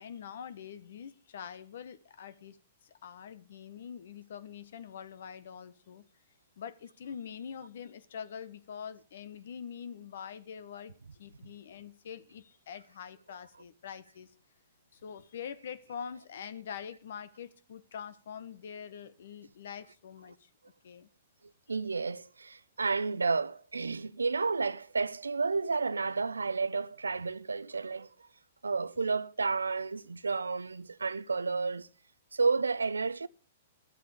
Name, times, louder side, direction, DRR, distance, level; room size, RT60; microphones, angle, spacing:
voice 1, 0.0-2.6 2.8-6.0 6.6-14.3 14.9-20.5 20.8-21.1, left 7 dB, 65° left, 1.2 m, -44 dB
voice 2, 21.7-28.1 28.6-31.9 32.3-33.3, right 4 dB, 85° right, 0.5 m, -31 dB
13.0 x 8.2 x 6.7 m
hypercardioid pair, 110°, 0 cm